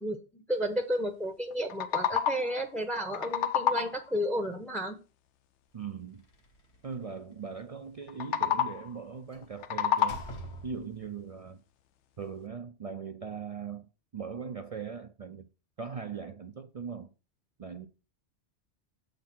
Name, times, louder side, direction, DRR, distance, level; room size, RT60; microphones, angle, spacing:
voice 1, 0.0-5.0, equal, ahead, 0.6 m, -32 dB
sound 1, 1.5-2.6 3.0-4.1 8.1-9.0 9.4-10.5, left 8 dB, 85° left, 0.9 m, -29 dB
voice 2, 5.7-6.3 6.8-10.2 10.6-11.6 12.2-15.5 15.8-17.1 17.6-17.9, right 6 dB, 50° right, 0.4 m, -40 dB
Slam, 6.1-7.2 9.3-9.5 10.0-11.2, right 1 dB, 65° left, 1.7 m, -45 dB
7.2 x 4.0 x 5.8 m
omnidirectional pair, 1.2 m